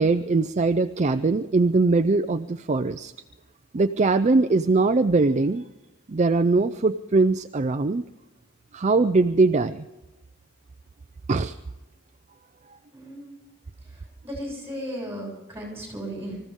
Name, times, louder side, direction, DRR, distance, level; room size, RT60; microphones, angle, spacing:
voice 1, 0.0-3.1 3.7-5.6 6.1-8.1 8.7-9.9 11.3-11.6, right 3 dB, 35° right, 9 dB, 0.5 m, -21 dB
voice 2, 12.9-13.3 14.2-16.4, equal, 10° right, -1 dB, 7.1 m, -35 dB
25.0 x 15.0 x 3.7 m, 1.1 s
head